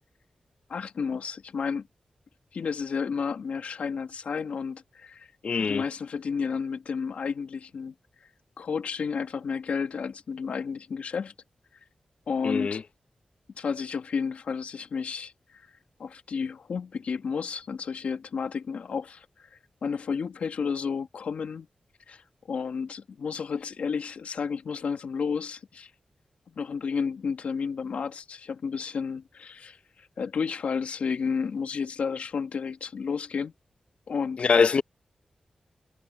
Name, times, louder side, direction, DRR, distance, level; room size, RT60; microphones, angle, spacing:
voice 1, 0.7-1.9 2.5-5.3 5.6-7.9 8.6-11.3 12.3-12.8 13.6-15.6 16.0-19.5 19.8-21.7 22.1-25.9 26.5-33.5 34.1-34.5, left 6 dB, 90° left, 1.8 m, -32 dB
voice 2, 5.4-5.9 12.4-12.8 34.4-34.8, left 5 dB, 60° left, 0.9 m, -23 dB
wide cardioid pair, 140°, 2 cm